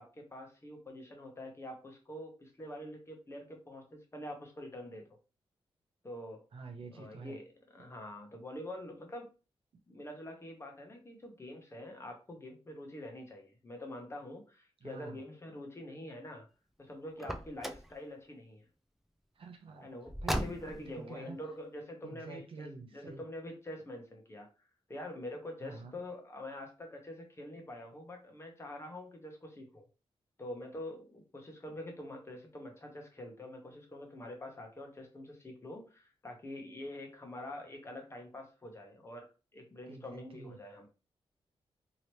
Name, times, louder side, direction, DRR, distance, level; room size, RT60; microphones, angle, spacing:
voice 1, 0.0-5.2 6.0-6.4 6.9-9.3 9.9-16.4 16.8-18.6 19.8-24.5 24.9-29.8 30.4-39.3 39.5-40.9, left 1 dB, 25° left, 2 dB, 0.9 m, -45 dB
voice 2, 6.5-7.4 14.8-15.2 19.4-19.9 20.2-20.8 21.1-21.4 22.0-23.2 25.6-26.0 39.9-40.6, right 4 dB, 60° right, 4 dB, 0.7 m, -47 dB
Car, 17.2-17.9 20.1-20.9, equal, 5° right, 0.3 m, -36 dB
3.0 x 2.8 x 3.0 m, 0.32 s
wide cardioid pair, 115°, 10 cm